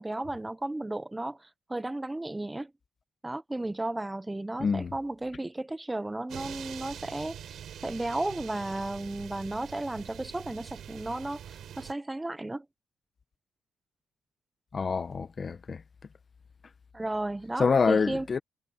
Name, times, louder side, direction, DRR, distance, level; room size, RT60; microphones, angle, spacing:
voice 1, 0.0-2.7 3.2-12.6 16.9-18.3, right 2 dB, 10° right, 1.0 m, -34 dB
voice 2, 4.6-4.9 14.7-15.8 17.6-18.4, left 5 dB, 40° left, 1.3 m, -26 dB
sound 1, 6.3-11.9, right 9 dB, 65° right, 6.9 m, -44 dB
cardioid pair, 90°, 0 cm